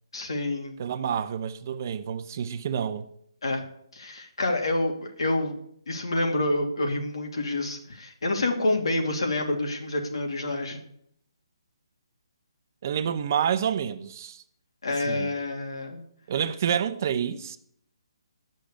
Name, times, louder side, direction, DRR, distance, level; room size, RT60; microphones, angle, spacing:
voice 1, 0.1-0.8 3.4-3.6 3.9-5.6 5.9-10.8 14.8-16.0, left 2 dB, 70° left, 2.6 m, -28 dB
voice 2, 0.8-3.1 12.8-14.4 15.0-15.3 16.3-17.6, right 8 dB, 35° right, 0.7 m, -28 dB
10.5 x 6.5 x 8.6 m
hypercardioid pair, 170°, 3 cm